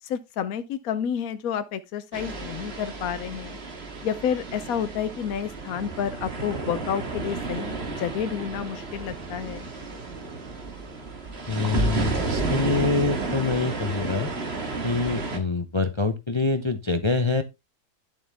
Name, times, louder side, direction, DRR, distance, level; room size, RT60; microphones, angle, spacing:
voice 1, 0.0-3.6 4.0-9.7, left 8 dB, 65° left, 1.1 m, -30 dB
sound 1, 2.1-15.4, right 3 dB, 40° right, 2.1 m, -31 dB
voice 2, 11.5-14.3 14.8-17.4, left 4 dB, 35° left, 0.4 m, -25 dB
11.0 x 7.3 x 3.5 m
omnidirectional pair, 1.8 m